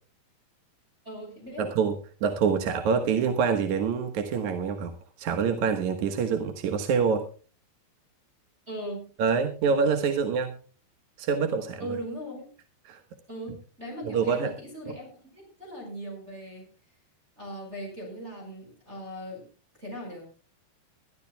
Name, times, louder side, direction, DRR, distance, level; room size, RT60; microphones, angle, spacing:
voice 1, 1.0-1.6 8.7-9.1 11.8-12.5 13.3-16.7 17.4-19.5 19.8-20.3, equal, 15° right, -1 dB, 5.7 m, -39 dB
voice 2, 1.6-1.9 2.2-4.9 5.2-7.2 9.2-10.5 11.2-11.9 12.9-13.0 14.1-14.5 14.9-15.0, right 6 dB, 60° right, 6 dB, 2.3 m, -26 dB
23.0 x 13.0 x 2.3 m, 0.36 s
omnidirectional pair, 4.6 m